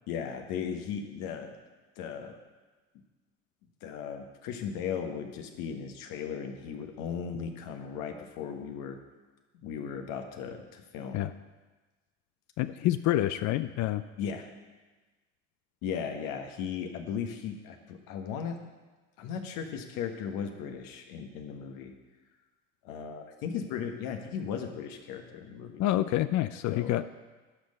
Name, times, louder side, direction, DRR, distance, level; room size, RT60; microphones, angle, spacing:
voice 1, 0.1-1.6 2.0-2.4 3.8-9.0 9.5-11.2 14.2-14.5 15.8-18.6 19.2-21.9 22.8-25.8 26.7-26.9, left 7 dB, 70° left, 4 dB, 1.3 m, -37 dB
voice 2, 12.6-14.0 25.8-27.1, left 14 dB, 55° left, 12 dB, 0.5 m, -27 dB
10.0 x 5.4 x 6.6 m, 1.2 s
hypercardioid pair, 75°, 35 cm